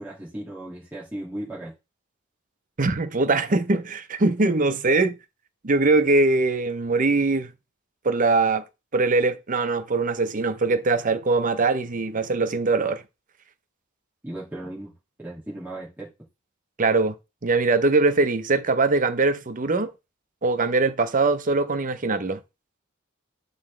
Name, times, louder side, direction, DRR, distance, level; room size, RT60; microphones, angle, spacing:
voice 1, 0.0-1.7 14.2-14.9 15.2-16.1, right 1 dB, 10° right, 2.2 m, -36 dB
voice 2, 2.8-5.2 5.6-7.5 8.0-8.6 8.9-13.0 16.8-17.1 17.4-19.9 20.4-22.4, right 3 dB, 40° right, 0.7 m, -22 dB
11.5 x 4.1 x 3.3 m
head